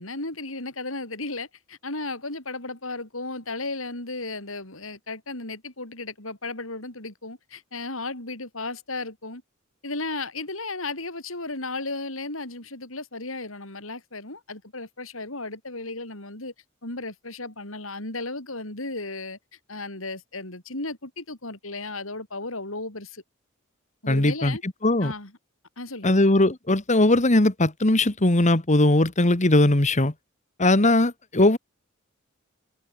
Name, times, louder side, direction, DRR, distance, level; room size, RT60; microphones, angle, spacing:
voice 1, 0.0-9.4 9.8-16.5 16.8-19.4 19.7-23.2 24.0-24.6 25.0-25.3 25.8-26.3, left 2 dB, 75° left, 6.5 m, -34 dB
voice 2, 24.1-25.1 26.0-30.1 30.6-31.6, left 2 dB, 35° left, 1.8 m, -20 dB
head